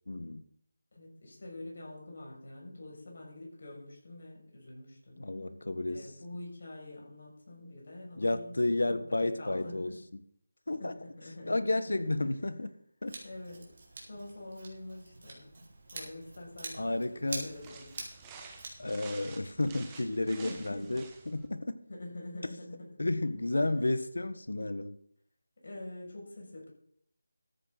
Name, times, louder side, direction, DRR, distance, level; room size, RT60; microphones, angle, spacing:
voice 1, 0.1-0.4 5.2-6.1 8.2-9.9 10.7-10.9 11.4-12.7 13.0-13.2 16.8-17.5 18.8-21.8 23.0-25.0, left 2 dB, 85° left, 12 dB, 1.4 m, -32 dB
voice 2, 0.9-5.3 5.9-10.0 10.8-11.6 11.9-12.0 13.2-15.5 15.9-18.0 20.3-20.9 21.9-23.0 23.6-23.9 25.6-26.7, left 1 dB, 50° left, -1 dB, 6.6 m, -46 dB
Scissors, 13.1-18.7, right 3 dB, 40° right, 3.7 m, -46 dB
sound 1, 17.4-21.5, right 5 dB, 10° right, 1.2 m, -51 dB
13.5 x 10.5 x 4.1 m, 0.66 s
figure-of-eight pair, 175°, 0 cm